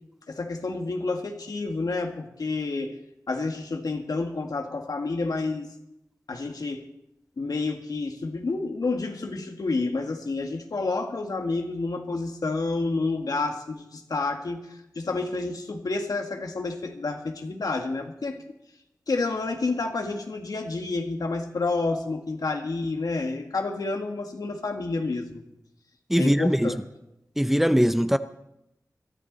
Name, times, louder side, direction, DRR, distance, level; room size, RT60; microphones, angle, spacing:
voice 1, 0.3-3.0 3.3-5.7 6.3-6.8 7.4-18.4 19.1-25.4 26.2-26.8, left 3 dB, 75° left, 1.8 m, -29 dB
voice 2, 26.1-26.7 27.4-28.2, equal, 5° right, 0.6 m, -21 dB
22.0 x 13.5 x 4.0 m
wide cardioid pair, 70°, 7 cm